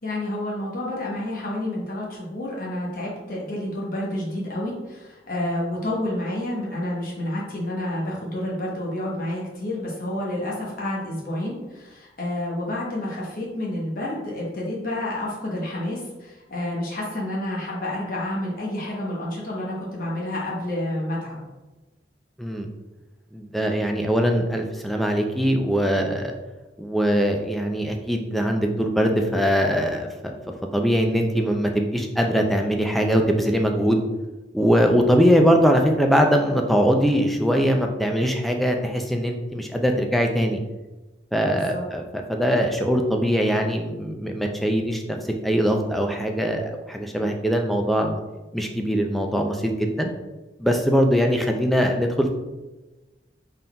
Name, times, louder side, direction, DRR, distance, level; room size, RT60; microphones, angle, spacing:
voice 1, 0.0-21.4 41.5-41.8, left 1 dB, 50° left, -4 dB, 0.9 m, -29 dB
voice 2, 23.3-26.3 26.8-30.3 30.7-34.0 34.5-40.6 41.3-45.2 45.4-48.2 48.5-50.1 50.6-52.3, equal, ahead, 3 dB, 0.3 m, -22 dB
4.0 x 3.7 x 2.2 m, 1.1 s
head